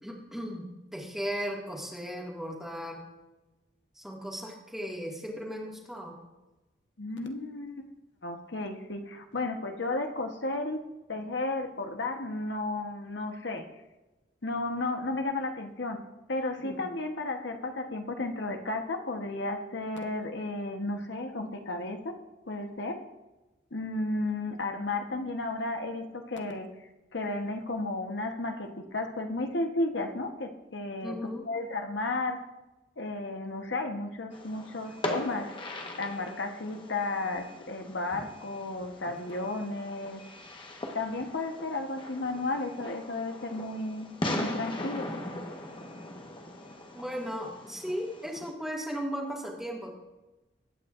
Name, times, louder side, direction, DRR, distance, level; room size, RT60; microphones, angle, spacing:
voice 1, 0.0-0.7 0.9-3.0 4.0-6.2 16.6-16.8 31.0-31.5 46.9-49.9, equal, ahead, -2 dB, 1.9 m, -36 dB
voice 2, 7.0-7.9 8.2-10.8 11.1-13.7 14.4-16.0 16.3-22.1 22.5-23.0 23.7-26.7 27.1-32.4 33.0-35.5 36.0-40.2 40.9-44.1 44.3-45.1, left 2 dB, 80° left, 4 dB, 1.1 m, -33 dB
Fireworks, 34.3-48.5, left 1 dB, 30° left, 1.2 m, -40 dB
20.5 x 8.8 x 2.5 m, 1.1 s
head